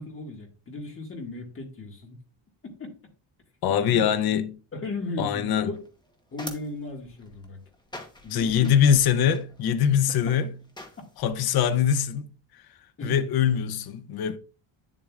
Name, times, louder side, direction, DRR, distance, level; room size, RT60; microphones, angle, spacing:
voice 1, 0.0-2.2 2.8-2.9 3.8-4.1 4.7-5.8 6.3-7.6 8.2-8.7 10.1-10.4 13.0-13.2, left 2 dB, 25° left, 1.8 m, -36 dB
voice 2, 3.6-4.5 5.2-5.7 8.3-10.5 11.2-12.3 13.0-14.4, left 8 dB, 50° left, 0.7 m, -23 dB
sound 1, 5.7-11.4, left 1 dB, 10° left, 1.0 m, -46 dB
9.2 x 7.4 x 2.4 m
cardioid pair, 170°, 49 cm